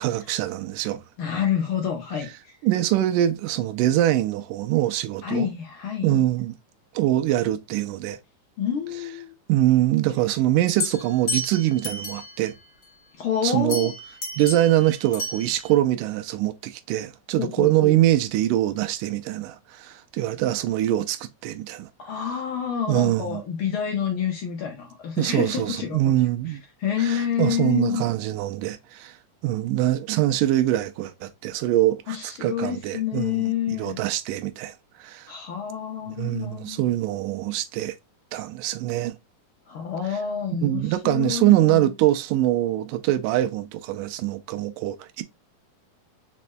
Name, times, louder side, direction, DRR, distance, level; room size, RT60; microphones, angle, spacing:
voice 1, 0.0-1.0 2.6-5.5 6.0-6.5 7.0-8.2 9.5-12.5 13.4-13.9 14.4-21.9 22.9-23.4 25.2-26.6 27.0-29.1 29.4-33.4 33.8-34.7 35.0-35.3 36.1-38.0 38.3-39.1 40.6-45.2, right 14 dB, 90° right, 2.2 m, -23 dB
voice 2, 1.2-2.6 5.2-6.3 8.6-9.3 13.2-13.9 17.4-18.0 22.0-26.1 26.5-28.0 32.1-34.0 35.3-36.8 39.7-41.9, left 8 dB, 75° left, 1.2 m, -28 dB
sound 1, 10.7-12.5 13.7-15.7, left 2 dB, 50° left, 0.9 m, -32 dB
5.2 x 4.2 x 2.2 m
omnidirectional pair, 3.7 m